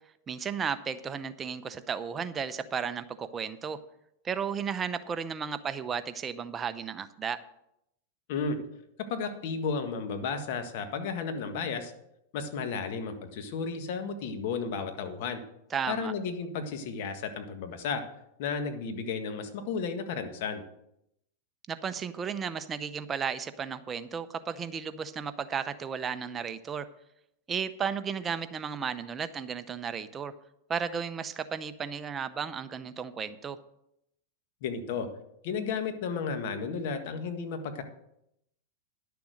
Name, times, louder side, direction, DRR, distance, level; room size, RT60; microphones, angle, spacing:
voice 1, 0.3-3.8 4.2-7.4 15.7-16.1 21.7-26.9 27.5-30.3 30.7-33.6, right 6 dB, 20° right, 12 dB, 0.7 m, -34 dB
voice 2, 9.1-11.9 12.3-15.4 15.9-18.0 18.4-20.6 34.6-35.1 35.4-37.8, left 5 dB, 60° left, 7 dB, 1.6 m, -33 dB
11.0 x 6.9 x 6.4 m, 0.80 s
hypercardioid pair, 125°, 0 cm